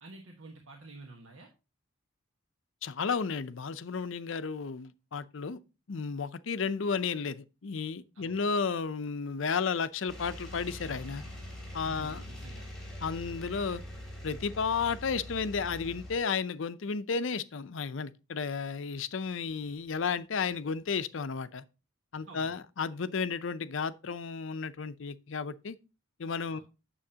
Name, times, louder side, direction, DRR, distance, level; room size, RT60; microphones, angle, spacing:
voice 1, 0.0-1.5 8.1-8.4 11.8-12.7 22.3-22.5 26.5-26.6, right 2 dB, 85° right, 1.4 m, -49 dB
voice 2, 2.8-5.6 5.9-11.2 11.7-12.2 13.0-13.8 14.2-21.6 22.1-25.8 26.2-26.6, left 5 dB, 65° left, 0.5 m, -33 dB
sound 1, 10.1-16.2, left 1 dB, ahead, 3.0 m, -43 dB
8.8 x 7.1 x 2.8 m
head